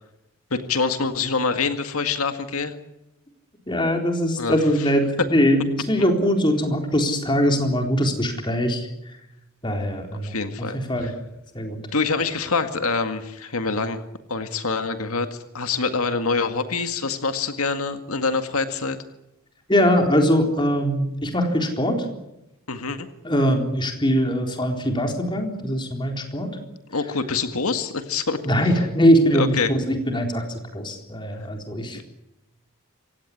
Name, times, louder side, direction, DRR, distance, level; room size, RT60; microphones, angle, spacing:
voice 1, 0.5-2.7 4.4-4.9 10.2-11.1 11.9-14.0 14.3-19.0 22.7-23.1 26.9-28.4 29.3-29.7 31.9-32.0, left 4 dB, 85° left, 8 dB, 1.9 m, -25 dB
voice 2, 3.7-8.9 9.6-11.1 11.5-11.8 19.7-22.1 23.2-26.6 28.4-32.0, equal, 20° left, 4 dB, 4.0 m, -22 dB
27.0 x 16.5 x 9.9 m, 0.91 s
head